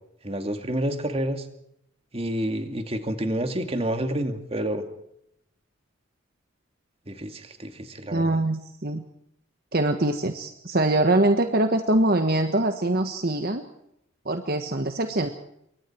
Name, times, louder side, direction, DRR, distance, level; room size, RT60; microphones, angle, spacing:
voice 1, 0.2-1.4 2.1-4.8 7.1-8.4, right 1 dB, 30° right, 7 dB, 2.5 m, -29 dB
voice 2, 8.1-9.0 9.7-13.6 14.2-15.3, right 1 dB, 50° right, 7 dB, 1.5 m, -23 dB
28.0 x 24.0 x 4.6 m, 0.77 s
head